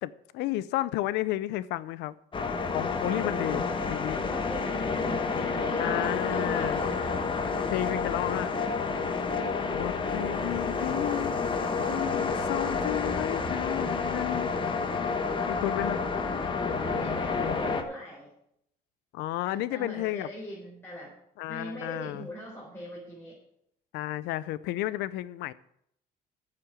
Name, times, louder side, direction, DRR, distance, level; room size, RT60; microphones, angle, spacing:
voice 1, 0.0-2.2 2.7-3.6 3.9-4.2 5.8-6.8 7.7-8.5 9.7-11.4 11.9-14.5 15.4-16.0 19.1-20.3 21.4-22.3 23.9-25.5, left 15 dB, 90° left, 18 dB, 0.6 m, -32 dB
sound 1, 2.3-17.8, left 4 dB, 30° left, 1.2 m, -29 dB
voice 2, 3.1-3.7 4.1-7.1 16.8-18.3 19.5-21.1 21.5-23.4, equal, 15° left, -5 dB, 4.0 m, -41 dB
8.6 x 7.6 x 7.7 m, 0.74 s
cardioid pair, 110°, 17 cm